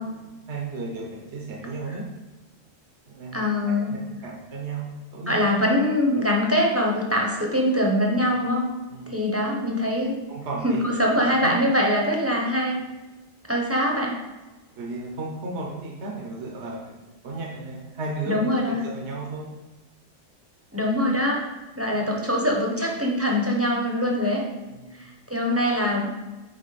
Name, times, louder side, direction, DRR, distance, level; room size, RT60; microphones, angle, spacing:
voice 1, 0.0-2.1 3.1-5.4 8.2-8.4 8.9-9.1 10.3-10.9 11.2-11.5 12.6-12.8 14.8-19.5 21.8-22.0 24.7-25.0, right 3 dB, 55° right, -2 dB, 1.3 m, -35 dB
voice 2, 3.3-3.9 5.3-8.7 9.1-10.1 10.6-12.8 13.5-14.2 18.3-18.9 20.7-21.4 21.8-24.4 24.9-26.1, left 1 dB, 10° right, -2 dB, 1.0 m, -23 dB
9.3 x 4.2 x 4.2 m, 1.1 s
omnidirectional pair, 1.4 m